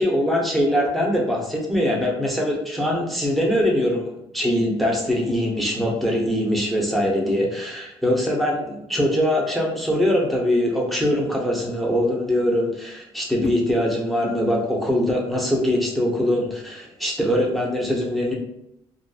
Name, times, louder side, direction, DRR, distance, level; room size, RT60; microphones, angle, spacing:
voice 1, 0.0-18.3, equal, ahead, -2 dB, 0.7 m, -22 dB
2.5 x 2.3 x 2.3 m, 0.84 s
cardioid pair, 105°, 10 cm